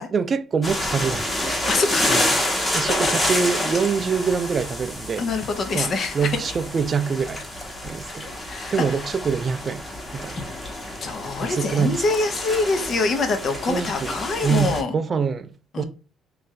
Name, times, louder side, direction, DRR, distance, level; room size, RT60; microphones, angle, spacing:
voice 1, 0.0-1.4 2.1-2.3 2.7-5.2 5.7-7.4 7.8-8.3 8.7-9.8 10.1-10.4 11.4-12.0 13.6-14.1 14.4-15.5 15.8-15.9, right 6 dB, 35° right, 0.3 m, -25 dB
sound 1, 0.6-14.8, left 1 dB, 20° left, 1.1 m, -28 dB
voice 2, 1.7-2.5 2.9-3.1 5.2-6.4 8.5-9.0 11.0-14.9 15.7-15.8, left 3 dB, 50° left, 0.8 m, -25 dB
3.2 x 2.5 x 3.7 m
cardioid pair, 110°, 0 cm